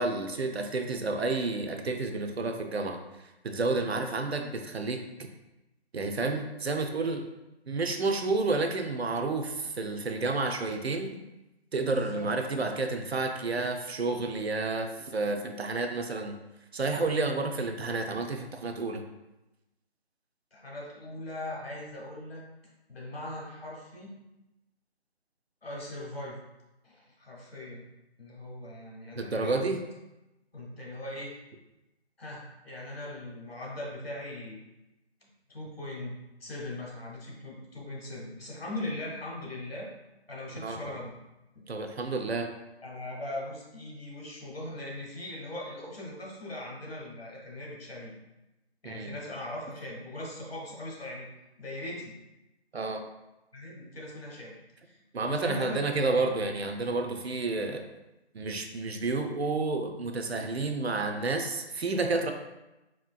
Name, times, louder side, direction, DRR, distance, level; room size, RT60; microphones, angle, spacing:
voice 1, 0.0-3.0 3.4-5.0 5.9-7.2 7.7-11.2 11.7-16.4 16.7-19.0 29.1-29.8 40.6-40.8 41.7-42.5 48.8-49.2 52.7-53.0 55.1-57.8 58.3-62.3, right 3 dB, 70° right, 5 dB, 0.5 m, -30 dB
voice 2, 11.8-12.3 20.5-22.4 22.9-24.2 25.6-26.4 26.8-27.8 28.2-29.6 30.5-31.4 32.2-34.6 35.2-39.9 40.3-41.2 41.5-41.6 42.8-48.1 48.8-51.3 51.6-52.2 53.5-54.6 54.8-56.2, left 1 dB, 60° left, -3 dB, 1.2 m, -40 dB
4.4 x 2.5 x 2.2 m, 0.96 s
figure-of-eight pair, 155°, 33 cm